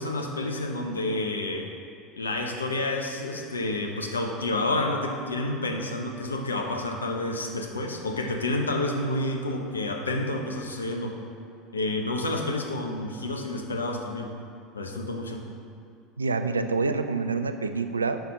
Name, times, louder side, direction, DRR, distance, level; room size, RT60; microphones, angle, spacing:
voice 1, 0.0-1.7 2.2-11.2 11.7-14.3 14.7-15.4, left 2 dB, 80° left, 3 dB, 0.7 m, -29 dB
voice 2, 16.2-18.2, right 4 dB, 80° right, 9 dB, 0.3 m, -27 dB
5.7 x 5.7 x 5.3 m, 2.4 s
figure-of-eight pair, 70°, 0 cm